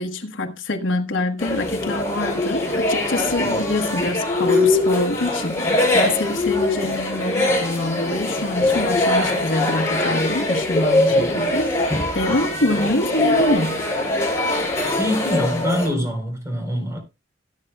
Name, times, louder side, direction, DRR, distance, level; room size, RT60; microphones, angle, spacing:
voice 1, 0.0-13.8, left 1 dB, 80° left, 1.3 m, -25 dB
sound 1, 1.4-15.9, left 2 dB, 15° left, 5.8 m, -22 dB
voice 2, 11.1-11.4 15.0-17.0, left 1 dB, 15° right, 4.1 m, -24 dB
18.5 x 8.4 x 2.3 m
head